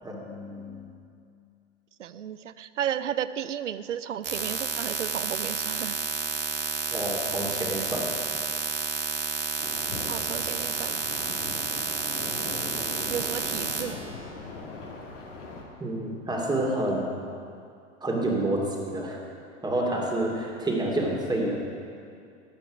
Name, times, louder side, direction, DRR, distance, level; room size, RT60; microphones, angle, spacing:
voice 1, 0.0-0.9 6.9-8.2 15.8-17.2 18.0-19.2 19.6-21.6, right 1 dB, 10° right, -1 dB, 2.6 m, -28 dB
voice 2, 2.0-6.0 10.1-11.0 13.1-14.0, right 10 dB, 75° right, 14 dB, 0.6 m, -33 dB
sound 1, 4.2-13.8, right 7 dB, 30° right, 1.4 m, -30 dB
sound 2, 9.6-15.6, left 3 dB, 75° left, 2.4 m, -39 dB
18.5 x 8.9 x 5.0 m, 2.4 s
figure-of-eight pair, 90°, 37 cm